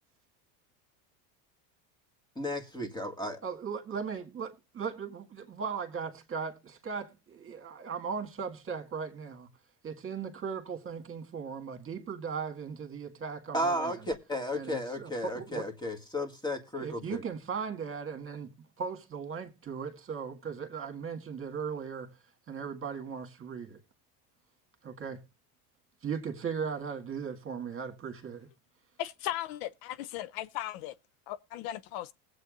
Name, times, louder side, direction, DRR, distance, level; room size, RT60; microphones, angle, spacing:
voice 1, 2.4-3.4 13.5-17.2, left 1 dB, 10° left, 1.7 m, -34 dB
voice 2, 3.4-9.5 9.8-13.9 14.5-15.7 16.8-18.5 18.8-22.1 22.5-23.8 24.8-25.2 26.0-28.5, right 6 dB, 25° right, 1.9 m, -38 dB
voice 3, 29.0-30.9 31.3-32.1, left 13 dB, 70° left, 0.6 m, -37 dB
19.0 x 8.0 x 2.5 m
supercardioid pair, 105°, 47 cm